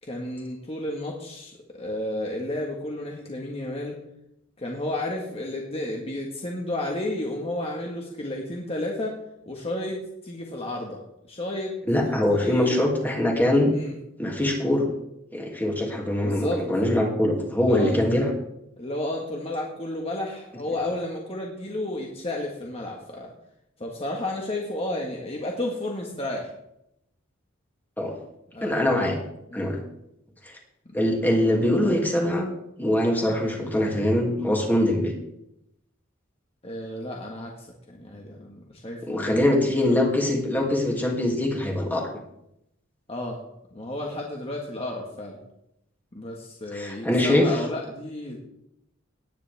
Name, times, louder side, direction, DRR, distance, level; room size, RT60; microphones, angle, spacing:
voice 1, 0.0-4.0 4.6-9.2 9.4-11.7 12.0-12.9 13.7-13.9 16.2-16.7 17.6-18.0 18.8-23.3 23.8-26.5 28.5-28.9 29.5-29.7 30.9-31.0 36.6-40.0 43.1-43.4 43.7-45.4 46.1-48.4, left 1 dB, 30° left, 0 dB, 1.6 m, -32 dB
voice 2, 11.9-13.7 14.2-14.9 15.3-18.3 28.0-28.1 28.6-29.2 29.5-29.8 30.5-30.6 30.9-32.5 32.8-35.1 39.0-42.1 46.7-47.5, left 1 dB, 10° left, -1 dB, 2.5 m, -23 dB
18.0 x 10.0 x 3.5 m, 0.81 s
head